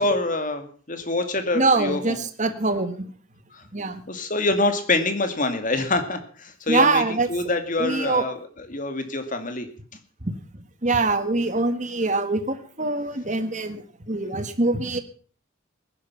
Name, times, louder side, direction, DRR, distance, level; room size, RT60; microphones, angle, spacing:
voice 1, 0.0-2.2 3.5-3.6 4.1-9.7, left 2 dB, 40° left, 8 dB, 2.3 m, -26 dB
voice 2, 1.5-3.1 3.7-4.0 6.7-7.3 7.8-8.2 10.2-10.3 10.8-15.0, right 3 dB, 35° right, 9 dB, 1.7 m, -23 dB
19.5 x 11.0 x 5.8 m, 0.44 s
head